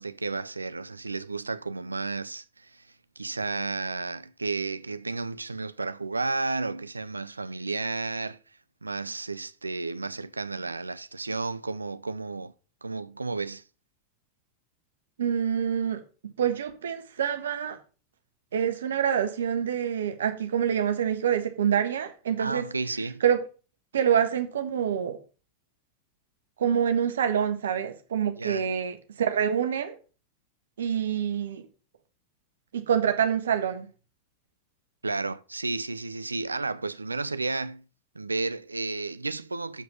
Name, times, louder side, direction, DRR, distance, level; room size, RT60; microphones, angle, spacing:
voice 1, 0.0-2.9 3.2-8.4 8.8-12.5 12.8-13.6 22.4-23.2 28.4-28.7 35.0-37.8 38.1-39.8, right 3 dB, 80° right, 0.5 m, -32 dB
voice 2, 15.2-16.0 16.4-17.8 18.5-22.7 23.2-23.4 23.9-25.2 26.6-30.0 30.8-31.7 32.7-33.9, right 8 dB, 65° right, 1.4 m, -26 dB
7.1 x 5.9 x 7.3 m
figure-of-eight pair, 90°, 0 cm